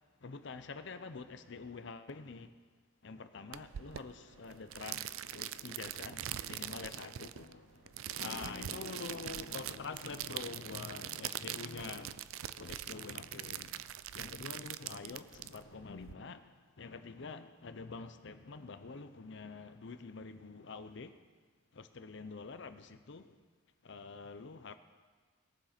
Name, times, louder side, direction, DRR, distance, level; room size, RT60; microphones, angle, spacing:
voice 1, 0.2-2.6 3.0-21.2 21.7-23.4 23.8-24.8, left 4 dB, 60° left, 0.6 m, -46 dB
sound 1, 3.5-16.1, right 12 dB, 80° right, 0.4 m, -43 dB
20.5 x 7.4 x 4.3 m
head